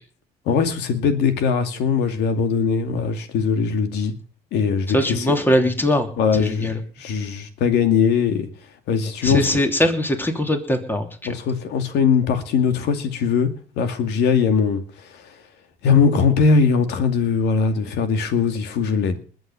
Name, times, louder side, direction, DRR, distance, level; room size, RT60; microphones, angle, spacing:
voice 1, 0.5-4.1 4.5-5.3 6.2-8.5 8.9-9.6 11.2-13.5 13.8-15.3 15.8-19.2, left 5 dB, 80° left, 8 dB, 2.4 m, -20 dB
voice 2, 4.9-6.1 6.4-6.8 9.2-11.0, left 1 dB, 10° left, 5 dB, 3.0 m, -20 dB
21.0 x 7.9 x 7.0 m, 0.43 s
cardioid pair, 110°, 17 cm